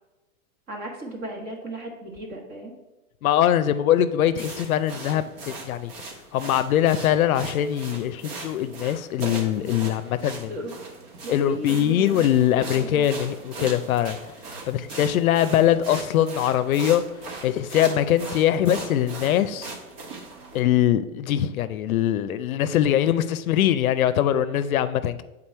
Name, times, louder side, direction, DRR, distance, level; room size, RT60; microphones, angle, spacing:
voice 1, 0.7-2.7 10.5-10.7 11.2-13.1, right 1 dB, 20° right, 1.2 m, -36 dB
voice 2, 3.2-5.9 6.3-10.5 11.3-14.2 14.7-17.0 17.4-19.7 20.5-25.2, left 11 dB, 75° left, 0.6 m, -22 dB
sound 1, 4.4-20.6, right 3 dB, 45° right, 1.4 m, -39 dB
7.5 x 3.9 x 4.4 m
hypercardioid pair, 145°, 42 cm